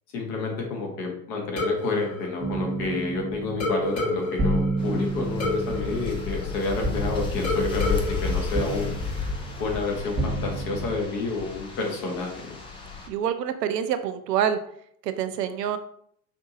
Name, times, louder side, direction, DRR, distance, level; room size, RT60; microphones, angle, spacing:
voice 1, 0.1-9.0 9.6-12.6, left 3 dB, 55° left, 0 dB, 1.4 m, -29 dB
sound 1, 1.6-3.2 3.6-7.0 7.4-9.4, left 2 dB, 35° left, 1.1 m, -31 dB
sound 2, 2.4-11.0, right 2 dB, 20° right, 0.7 m, -31 dB
sound 3, 4.8-13.1, left 4 dB, 10° left, 0.4 m, -33 dB
voice 2, 13.1-14.6 15.0-15.8, right 9 dB, 75° right, 9 dB, 0.6 m, -26 dB
5.2 x 2.6 x 2.6 m, 0.67 s
figure-of-eight pair, 75°, 50 cm